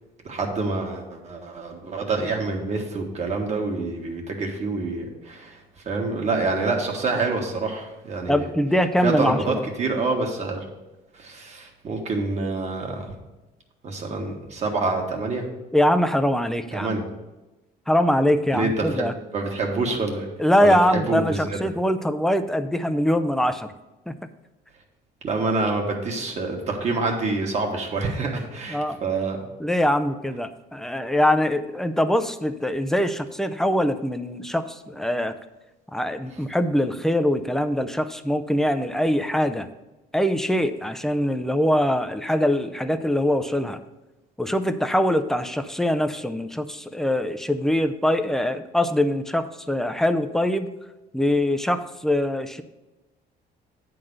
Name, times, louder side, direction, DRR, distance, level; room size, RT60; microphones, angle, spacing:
voice 1, 0.2-5.6 5.9-8.5 9.0-10.6 11.1-13.1 13.8-15.5 16.7-17.0 18.5-19.1 19.3-20.3 20.6-21.6 25.2-29.4, right 3 dB, 40° right, 1 dB, 1.7 m, -27 dB
voice 2, 8.3-9.6 15.7-17.0 17.9-19.1 20.4-23.7 24.1-24.2 28.7-29.0 29.6-35.4 35.9-39.7 40.1-43.8 44.4-50.7 51.1-52.6, left 1 dB, 5° left, 9 dB, 0.5 m, -23 dB
9.3 x 3.9 x 6.4 m, 1.0 s
cardioid pair, 110°, 17 cm